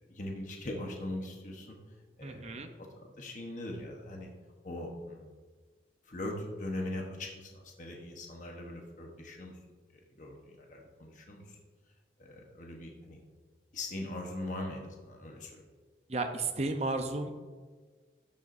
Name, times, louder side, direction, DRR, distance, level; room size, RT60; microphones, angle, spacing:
voice 1, 0.1-1.8 2.2-4.3 4.6-5.3 6.0-9.6 9.9-11.6 12.2-13.2 13.7-15.6, left 1 dB, 45° left, 1 dB, 1.1 m, -41 dB
voice 2, 2.2-2.7 16.1-17.3, right 3 dB, 35° right, 6 dB, 0.7 m, -33 dB
12.5 x 7.3 x 2.7 m, 1.4 s
head